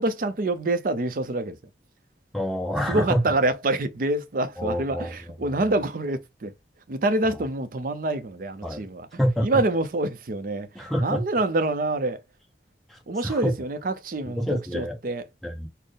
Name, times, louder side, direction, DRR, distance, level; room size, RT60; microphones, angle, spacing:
voice 1, 0.0-1.6 2.9-6.5 6.9-9.1 9.4-12.2 13.1-15.3, right 2 dB, 50° right, 0.5 m, -26 dB
voice 2, 2.3-3.2 4.6-5.1 8.6-8.8 9.2-9.5 10.7-11.2 12.9-13.5 14.4-15.0 15.4-15.7, equal, ahead, 0.8 m, -27 dB
4.2 x 2.0 x 3.3 m
head